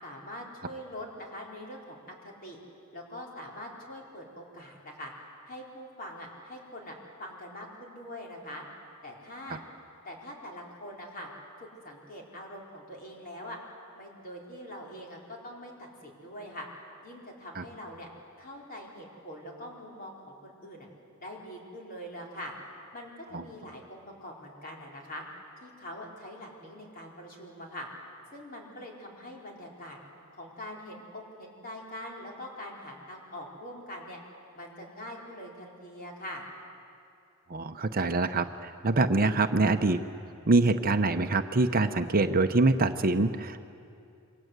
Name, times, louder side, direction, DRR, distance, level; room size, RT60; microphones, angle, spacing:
voice 1, 0.0-2.6 2.9-5.1 5.5-8.6 9.0-9.6 10.0-11.3 11.6-13.6 13.9-16.7 17.0-18.1 18.4-20.9 21.2-22.6 22.9-25.2 25.6-27.9 28.3-30.0 30.3-34.2 34.5-36.4, left 1 dB, 40° left, -1 dB, 4.6 m, -43 dB
voice 2, 37.5-40.0 40.5-43.7, right 3 dB, 40° right, 8 dB, 0.8 m, -25 dB
28.0 x 23.5 x 8.2 m, 2.6 s
head